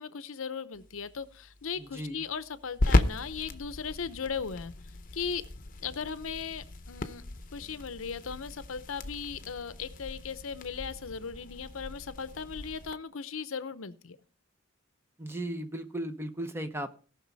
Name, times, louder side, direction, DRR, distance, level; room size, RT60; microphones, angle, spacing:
voice 1, 0.0-4.7 5.1-5.4 5.8-7.2 7.5-14.2, left 6 dB, 80° left, 13 dB, 0.7 m, -37 dB
sound 1, 0.7-12.9, left 2 dB, 40° left, 0.8 m, -35 dB
voice 2, 1.8-2.2 15.2-16.9, right 1 dB, 10° right, 8 dB, 0.8 m, -36 dB
17.5 x 5.9 x 4.1 m, 0.40 s
head